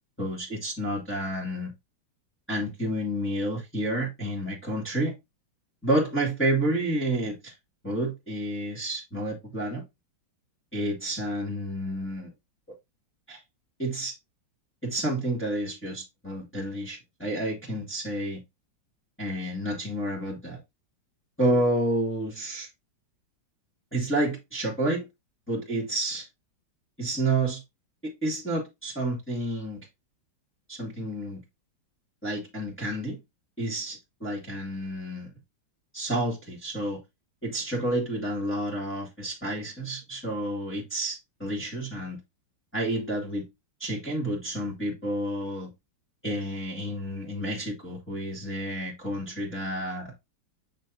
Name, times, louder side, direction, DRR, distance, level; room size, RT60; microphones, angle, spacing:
voice 1, 0.2-1.7 2.5-5.1 5.8-7.5 7.8-9.8 10.7-12.3 12.7-12.8 13.3-13.4 13.8-14.1 14.8-18.4 19.2-20.6 21.4-22.7 23.9-25.1 25.5-26.3 27.0-27.6 28.0-29.9 30.7-31.4 32.2-33.2 33.6-35.3 35.9-37.0 37.4-42.2 42.7-43.5 43.8-45.7 46.2-50.1, right 1 dB, 5° left, 2.0 m, -30 dB
6.7 x 6.1 x 2.7 m
omnidirectional pair, 2.1 m